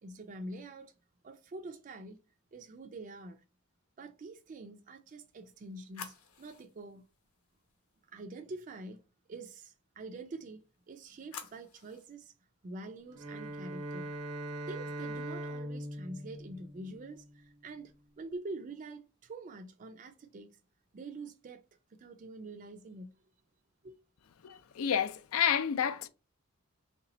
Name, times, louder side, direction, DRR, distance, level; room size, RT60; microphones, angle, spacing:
voice 1, 0.0-0.9 1.2-2.2 2.5-3.4 4.0-7.0 8.1-9.0 9.3-12.3 12.6-14.1 14.7-20.6 20.9-21.6 21.9-23.2 23.8-24.0, right 2 dB, 35° right, 0.3 m, -46 dB
sound 1, 5.1-8.2 10.6-12.1, left 6 dB, 85° left, 0.8 m, -52 dB
Bowed string instrument, 13.1-17.5, right 1 dB, 85° right, 0.8 m, -41 dB
voice 2, 24.4-26.1, left 8 dB, 70° left, 0.4 m, -30 dB
3.3 x 2.9 x 3.9 m
head